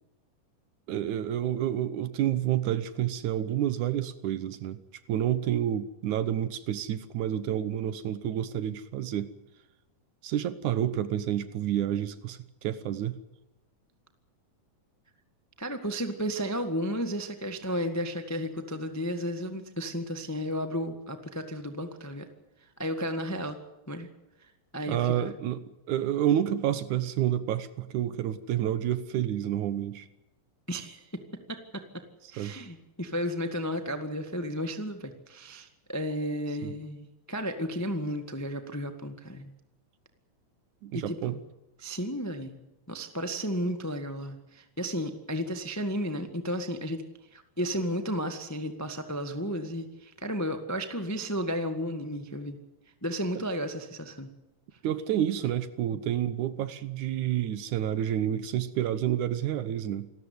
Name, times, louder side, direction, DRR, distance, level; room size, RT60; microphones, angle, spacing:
voice 1, 0.9-4.8 5.1-9.3 10.2-13.2 24.9-30.1 32.4-32.6 36.6-36.7 40.8-41.4 53.3-53.4 54.8-60.1, right 11 dB, 70° right, 13 dB, 2.3 m, -29 dB
voice 2, 15.6-22.3 22.8-23.6 23.9-24.1 24.7-25.3 30.7-32.0 32.3-39.5 40.9-41.4 41.8-42.6 42.9-47.0 47.3-52.6 53.0-54.3, equal, 25° left, 7 dB, 0.4 m, -33 dB
27.0 x 13.5 x 9.6 m, 0.95 s
omnidirectional pair, 3.9 m